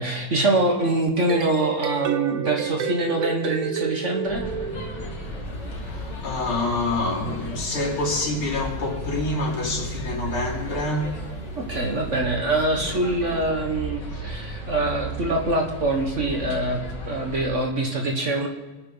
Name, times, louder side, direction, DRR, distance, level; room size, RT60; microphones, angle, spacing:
voice 1, 0.0-4.4 11.6-16.8 17.1-18.5, right 2 dB, 40° right, 1.4 m, -24 dB
sound 1, 1.1-5.4, right 6 dB, 80° right, 0.8 m, -30 dB
sound 2, 4.3-17.4, right 1 dB, 55° left, 2.8 m, -34 dB
voice 2, 5.8-11.2, left 2 dB, 85° left, 3.8 m, -27 dB
24.0 x 9.8 x 3.9 m
omnidirectional pair, 2.3 m